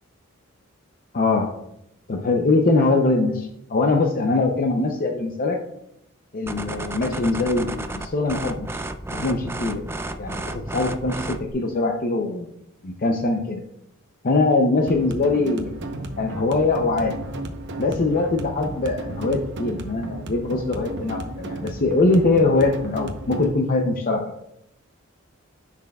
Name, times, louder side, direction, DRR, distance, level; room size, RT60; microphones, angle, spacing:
voice 1, 1.1-1.5 2.1-5.6 6.3-8.8 9.1-9.8 10.2-12.5 12.8-13.6 14.2-15.7 16.2-17.1 17.8-24.2, left 3 dB, 40° left, 2 dB, 0.6 m, -22 dB
sound 1, 6.5-11.5, right 2 dB, 10° right, 0.3 m, -32 dB
sound 2, 14.8-23.5, right 1 dB, 55° right, 0.8 m, -34 dB
10.5 x 5.9 x 2.3 m, 0.81 s
head